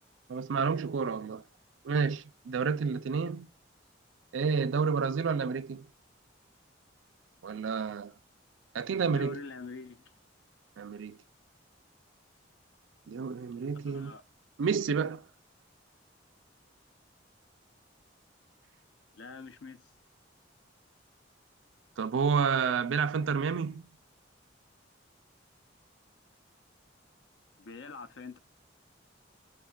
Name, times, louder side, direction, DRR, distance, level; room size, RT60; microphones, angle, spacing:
voice 1, 0.3-1.4 1.8-3.5 4.3-5.9 7.4-8.1 8.7-9.4 10.8-11.2 13.1-14.2 14.6-15.2 22.0-23.8, right 5 dB, 75° right, 0.4 m, -30 dB
voice 2, 9.1-10.0 13.9-14.2 19.1-19.8 27.6-28.4, left 4 dB, 85° left, 0.6 m, -44 dB
5.2 x 2.2 x 2.3 m
head